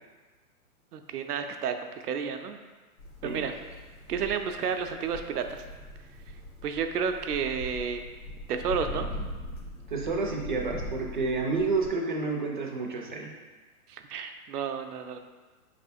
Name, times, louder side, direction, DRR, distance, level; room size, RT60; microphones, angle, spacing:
voice 1, 0.9-1.7 2.0-2.6 3.2-3.5 4.1-5.6 6.6-8.0 8.5-9.1 13.9-15.2, right 6 dB, 85° right, 6 dB, 0.6 m, -31 dB
sound 1, 3.0-11.9, left 1 dB, 60° left, 1.1 m, -41 dB
voice 2, 9.9-13.3, right 3 dB, 35° right, 0 dB, 0.4 m, -30 dB
4.8 x 3.3 x 2.6 m, 1.3 s
hypercardioid pair, 160°, 46 cm